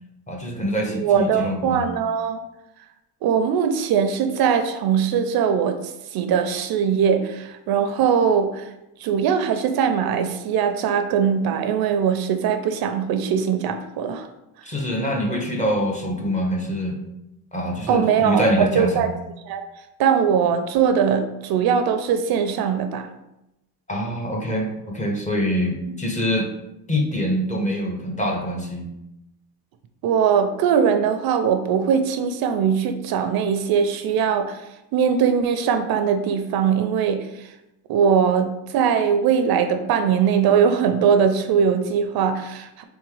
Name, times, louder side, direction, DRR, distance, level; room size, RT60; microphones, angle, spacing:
voice 1, 0.3-1.9 14.6-17.0 17.5-19.1 23.9-26.5 26.9-28.9, equal, 20° left, 1 dB, 0.6 m, -24 dB
voice 2, 0.9-2.4 3.2-5.8 6.1-8.7 9.0-14.3 17.9-19.1 19.5-19.6 20.0-23.1 30.0-34.6 34.9-37.5 37.9-42.8, right 7 dB, 60° right, 8 dB, 0.5 m, -21 dB
3.6 x 3.5 x 3.2 m, 0.89 s
cardioid pair, 135°, 41 cm